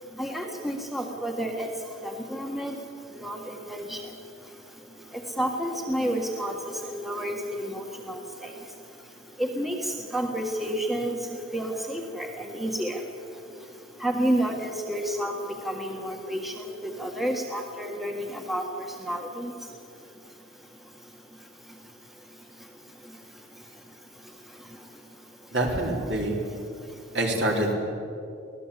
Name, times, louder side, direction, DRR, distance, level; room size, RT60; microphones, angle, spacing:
voice 1, 0.2-1.7 2.0-2.7 3.2-4.0 5.4-6.6 6.9-8.2 9.4-9.8 10.1-11.2 11.5-12.3 12.5-13.0 14.0-15.3 15.7-18.6 19.1-19.5, right 1 dB, ahead, 2 dB, 1.6 m, -30 dB
voice 2, 25.5-26.4 27.1-27.8, right 1 dB, 60° right, 1 dB, 3.8 m, -25 dB
24.0 x 17.0 x 8.4 m, 2.7 s
head